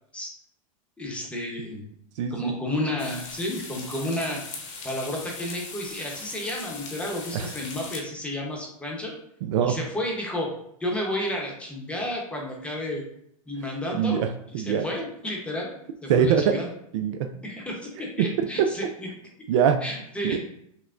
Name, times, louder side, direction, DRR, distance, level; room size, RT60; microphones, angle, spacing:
voice 1, 1.0-1.9 2.3-4.4 4.8-9.1 9.6-10.5 10.8-13.0 13.5-14.2 14.6-15.7 16.0-16.7 17.4-19.1 19.8-20.4, left 1 dB, 5° left, -1 dB, 0.8 m, -31 dB
voice 2, 2.2-2.5 7.3-7.5 9.4-9.8 13.9-14.8 16.1-16.6 16.9-17.3 18.2-18.3 18.6-18.7 19.5-19.8 20.3-20.4, right 8 dB, 55° right, 7 dB, 0.4 m, -23 dB
sound 1, 3.0-8.0, left 4 dB, 60° left, 1.0 m, -39 dB
5.8 x 2.1 x 2.4 m, 0.73 s
hypercardioid pair, 130°, 18 cm